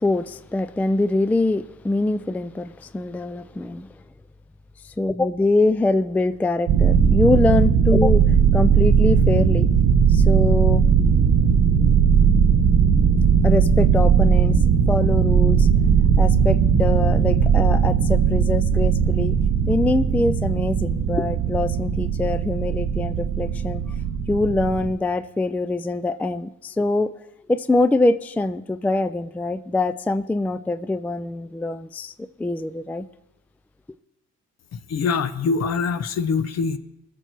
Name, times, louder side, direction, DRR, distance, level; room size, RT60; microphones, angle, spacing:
voice 1, 0.0-3.9 4.8-8.2 8.5-9.7 10.1-10.8 13.4-14.6 14.9-15.7 16.2-19.4 19.7-23.8 24.3-27.1 27.5-33.0, left 2 dB, 5° left, 11 dB, 0.3 m, -23 dB
sound 1, 6.7-24.9, right 7 dB, 65° right, 1.0 m, -18 dB
voice 2, 34.7-36.8, left 5 dB, 60° left, 12 dB, 0.9 m, -24 dB
20.0 x 6.8 x 4.6 m, 0.93 s
cardioid pair, 90°, 30 cm